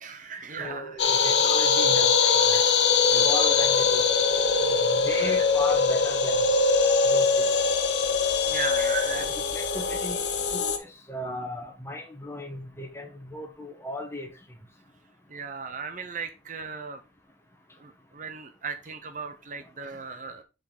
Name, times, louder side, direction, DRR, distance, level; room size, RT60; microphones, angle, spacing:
voice 1, 0.0-1.0 2.2-2.8 5.1-5.5 8.5-9.3 15.3-17.0 17.8-20.4, right 5 dB, 45° right, 0.7 m, -37 dB
voice 2, 0.6-2.1 2.3-2.6 3.1-4.0 4.7-6.4 7.0-7.5 9.1-14.3, left 1 dB, 15° left, 1.5 m, -37 dB
sound 1, 1.0-10.8, left 5 dB, 70° left, 1.0 m, -22 dB
6.8 x 5.2 x 3.8 m
head